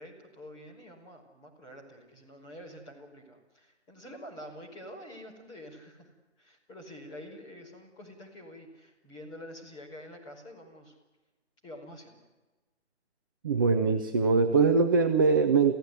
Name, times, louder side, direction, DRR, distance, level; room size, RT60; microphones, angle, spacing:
voice 1, 0.0-6.1 6.4-10.9 11.6-12.2, equal, 10° left, -2 dB, 5.0 m, -47 dB
voice 2, 13.4-15.7, right 4 dB, 20° right, 6 dB, 0.8 m, -22 dB
28.0 x 16.5 x 9.6 m, 1.2 s
figure-of-eight pair, 150°, 35 cm